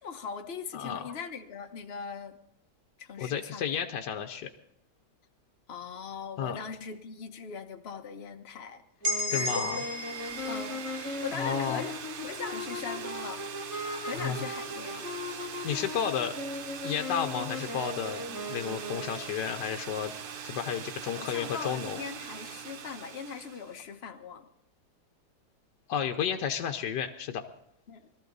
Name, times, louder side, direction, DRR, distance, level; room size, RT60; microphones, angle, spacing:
voice 1, 0.0-2.4 3.0-3.8 5.7-9.9 10.5-15.0 21.1-24.5 27.9-28.1, left 6 dB, 40° left, 5 dB, 1.2 m, -41 dB
voice 2, 0.7-1.1 3.2-4.5 6.4-6.6 9.3-9.8 11.3-11.8 13.8-14.4 14.9-16.3 16.8-18.2 18.5-20.1 20.4-22.0 25.9-27.4, left 8 dB, 75° left, 5 dB, 1.5 m, -32 dB
sound 1, 9.0-19.4, left 1 dB, 10° left, 2.2 m, -38 dB
sound 2, 9.0-12.9, left 1 dB, 60° right, 2.2 m, -35 dB
sound 3, 9.3-23.8, right 7 dB, 90° right, 0.4 m, -42 dB
22.0 x 14.0 x 4.0 m, 0.73 s
omnidirectional pair, 1.9 m